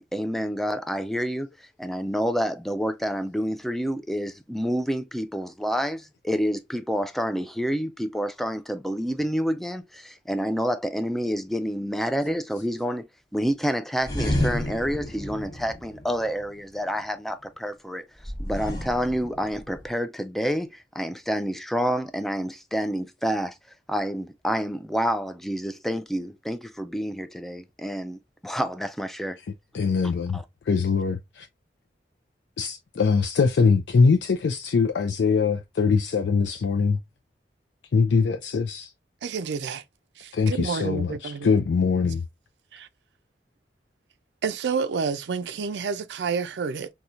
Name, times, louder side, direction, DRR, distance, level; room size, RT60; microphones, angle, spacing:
voice 1, 0.0-13.1 13.3-18.0 18.4-23.6 23.9-29.4 30.3-30.4, equal, ahead, 0.3 m, -28 dB
sound 1, 14.0-16.7 18.2-19.9, left 1 dB, 20° left, 0.8 m, -31 dB
voice 2, 29.7-30.4 30.7-31.5 32.6-37.0 37.9-38.9 40.3-42.2, left 5 dB, 90° left, 0.4 m, -22 dB
voice 3, 39.2-39.8 40.2-41.5 42.7-42.9 44.4-46.9, right 5 dB, 80° right, 0.4 m, -29 dB
4.2 x 2.3 x 2.4 m
head